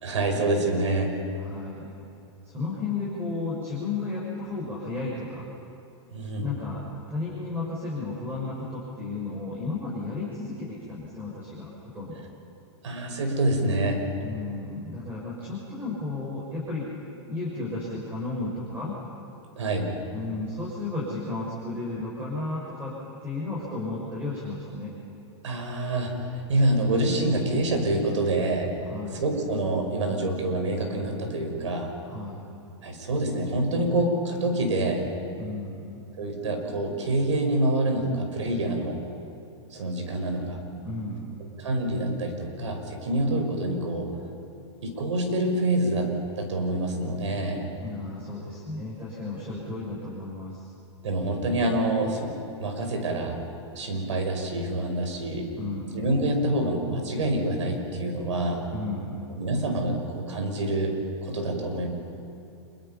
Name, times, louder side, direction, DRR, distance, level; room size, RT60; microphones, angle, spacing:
voice 1, 0.0-1.2 6.1-6.5 12.8-14.0 19.5-19.9 25.4-28.7 29.2-31.9 32.8-35.0 36.2-39.0 39.7-40.6 41.6-44.1 44.8-47.7 51.0-52.3 52.6-53.4 53.8-55.5 55.9-58.6 59.4-61.0 61.2-61.9, right 1 dB, 90° right, 3 dB, 5.5 m, -26 dB
voice 2, 1.4-1.9 2.4-5.5 6.4-12.2 14.2-16.9 17.3-18.9 20.1-22.9 23.2-24.9 28.8-29.2 32.0-32.4 35.4-36.0 40.8-41.4 47.8-50.7 55.6-56.1 58.7-59.2, left 3 dB, 15° right, -5 dB, 6.1 m, -33 dB
27.5 x 23.5 x 5.8 m, 2.7 s
hypercardioid pair, 140°, 15 cm